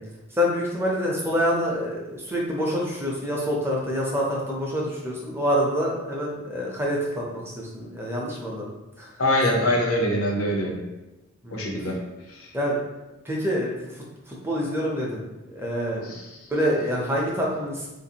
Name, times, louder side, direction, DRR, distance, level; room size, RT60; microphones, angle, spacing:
voice 1, 0.3-9.1 11.4-11.7 12.5-12.8 13.2-16.2 16.5-17.9, equal, 10° right, -3 dB, 0.5 m, -27 dB
voice 2, 9.2-10.8 11.5-12.0 12.3-12.5 16.0-16.3, left 1 dB, 90° left, 0 dB, 0.7 m, -24 dB
3.4 x 2.5 x 2.8 m, 1.0 s
head